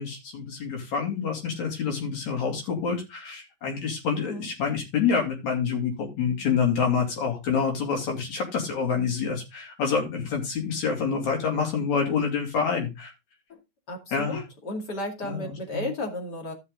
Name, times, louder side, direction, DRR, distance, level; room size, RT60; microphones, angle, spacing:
voice 1, 0.0-13.1 14.1-14.4 15.2-15.9, left 6 dB, 75° left, 2 dB, 4.1 m, -27 dB
voice 2, 13.9-16.5, left 1 dB, 35° left, 2 dB, 2.7 m, -33 dB
13.0 x 6.5 x 3.7 m, 0.24 s
omnidirectional pair, 3.3 m